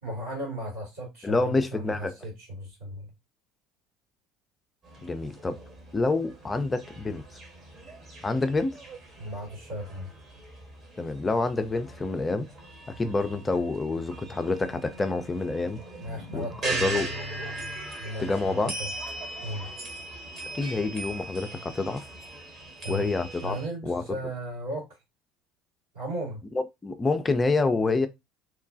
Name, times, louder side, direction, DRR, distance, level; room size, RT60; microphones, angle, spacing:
voice 1, 0.0-3.1 9.2-10.1 16.0-18.9 19.4-19.7 22.8-23.1 23.4-24.9 25.9-26.4, right 1 dB, 80° right, 1.9 m, -36 dB
voice 2, 1.2-2.1 5.0-5.6 5.9-7.2 8.2-8.8 11.0-12.5 12.9-15.8 16.3-16.4 16.8-17.1 18.2-18.8 20.5-22.0 22.9-23.6 23.9-24.0 26.8-28.1, left 3 dB, 25° left, 0.4 m, -27 dB
sound 1, 4.8-23.7, right 2 dB, 45° right, 1.2 m, -40 dB
3.0 x 2.2 x 2.5 m
figure-of-eight pair, 65°, 0 cm